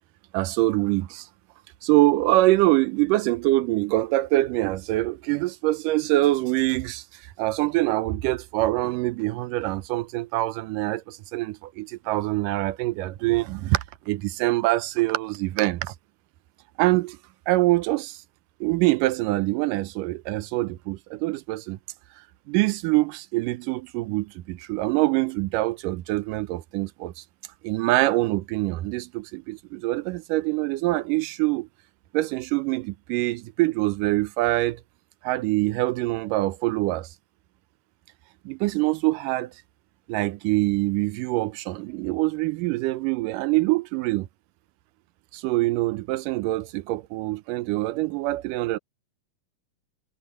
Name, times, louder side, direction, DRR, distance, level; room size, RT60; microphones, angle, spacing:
voice 1, 0.3-1.3 1.8-15.9 16.8-17.2 17.5-18.2 18.6-21.8 22.5-27.2 27.6-31.7 32.1-34.8 35.2-37.1 38.5-39.5 40.1-44.3 45.3-48.8, right 18 dB, 80° right, 2.3 m, -24 dB
omnidirectional pair, 3.9 m